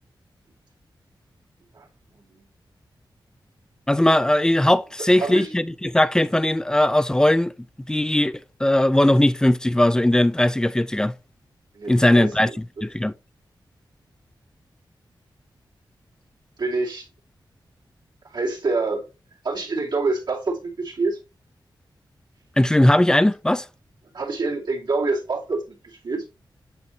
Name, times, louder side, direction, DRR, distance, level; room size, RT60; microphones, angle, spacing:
voice 1, 3.9-7.5 7.9-8.3 8.6-11.1 11.9-13.1 22.6-23.6, left 1 dB, 10° left, 0.3 m, -19 dB
voice 2, 5.0-5.6 11.7-12.3 16.6-17.1 18.3-19.1 19.4-21.2 24.1-26.2, right 3 dB, 65° right, 2.3 m, -26 dB
8.5 x 4.5 x 3.2 m
wide cardioid pair, 150°, 8 cm